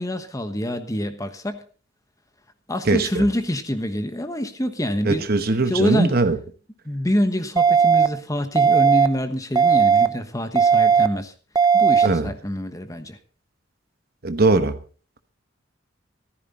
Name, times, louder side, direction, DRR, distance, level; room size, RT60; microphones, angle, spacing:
voice 1, 0.0-1.6 2.7-5.3 5.6-6.2 6.8-11.3 11.7-13.2, left 1 dB, 15° left, 1.2 m, -26 dB
voice 2, 2.9-3.2 5.1-6.4 12.0-12.3 14.2-14.7, right 3 dB, 50° right, 1.1 m, -20 dB
sound 1, 7.6-8.1 8.6-9.1 9.6-10.1 10.6-11.1 11.6-12.1, right 6 dB, 20° right, 0.6 m, -16 dB
14.5 x 14.0 x 4.2 m
head